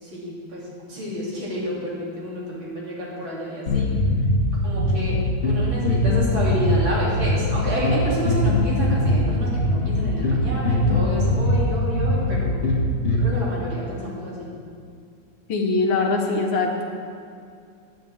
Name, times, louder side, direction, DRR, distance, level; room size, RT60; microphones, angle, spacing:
voice 1, 0.0-3.9 4.6-5.2 5.4-12.5 13.2-14.5, equal, 75° right, -6 dB, 3.7 m, -29 dB
sound 1, 3.7-13.2, left 1 dB, 35° left, 2.2 m, -22 dB
voice 2, 15.5-16.9, left 3 dB, 75° left, 2 dB, 1.9 m, -22 dB
15.5 x 10.0 x 3.6 m, 2.4 s
omnidirectional pair, 2.2 m